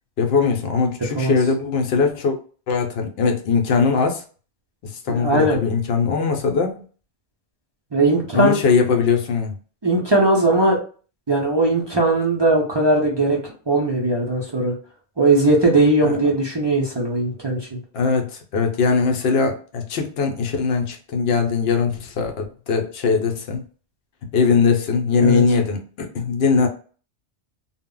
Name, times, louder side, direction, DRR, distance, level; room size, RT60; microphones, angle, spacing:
voice 1, 0.2-2.4 2.7-4.2 4.8-6.7 8.3-9.5 16.0-16.2 17.9-23.6 24.3-26.7, left 5 dB, 65° left, 4 dB, 0.8 m, -20 dB
voice 2, 5.1-5.6 7.9-8.6 9.8-10.8 11.3-13.4 13.7-14.7 15.2-17.8 25.2-25.4, right 2 dB, 40° right, -2 dB, 0.4 m, -19 dB
2.1 x 2.0 x 3.6 m, 0.39 s
omnidirectional pair, 1.2 m